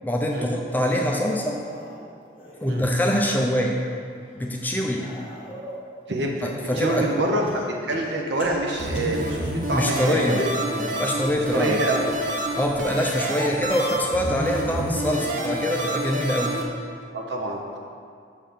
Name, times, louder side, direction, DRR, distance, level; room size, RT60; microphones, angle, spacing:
voice 1, 0.0-1.6 2.6-3.8 4.3-5.1 6.4-7.1 9.7-10.4 10.8-11.8 12.6-16.5, equal, 10° left, -1 dB, 0.5 m, -24 dB
sound 1, 1.1-3.4 3.9-5.9 6.7-9.5 10.0-10.6 11.8-14.7 15.1-15.5 16.7-16.8, equal, 30° left, 1.1 m, -40 dB
voice 2, 6.1-6.5 6.8-10.4 11.3-12.1 17.1-17.8, right 1 dB, 70° right, 0 dB, 0.8 m, -26 dB
sound 2, 8.8-16.6, right 1 dB, 45° right, 0.7 m, -28 dB
6.4 x 3.5 x 5.7 m, 2.2 s
head